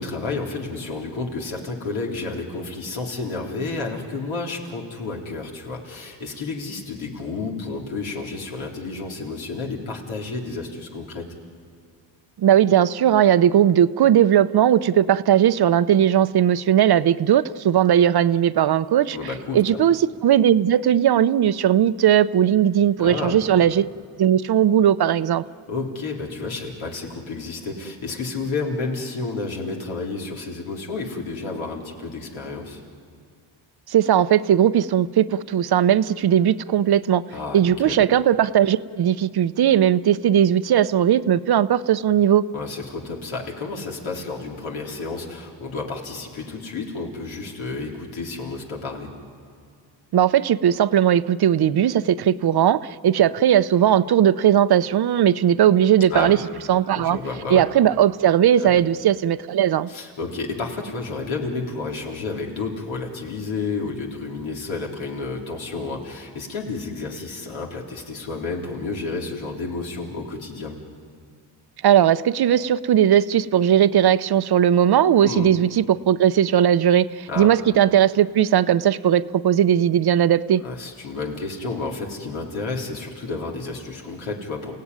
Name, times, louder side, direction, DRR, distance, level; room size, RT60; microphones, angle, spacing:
voice 1, 0.0-11.3 19.1-19.8 23.0-23.6 25.7-32.8 37.3-38.0 42.5-49.1 56.1-56.4 56.9-57.6 58.6-58.8 59.9-70.7 75.2-75.5 77.3-77.5 80.6-84.8, left 3 dB, 85° left, -1 dB, 3.8 m, -31 dB
voice 2, 12.4-19.2 19.5-23.9 24.2-25.4 33.9-37.2 37.5-42.4 50.1-56.4 56.7-57.2 57.5-59.9 71.8-80.6, right 10 dB, 55° right, 15 dB, 0.7 m, -18 dB
29.5 x 16.5 x 9.7 m, 2.1 s
cardioid pair, 90°, 46 cm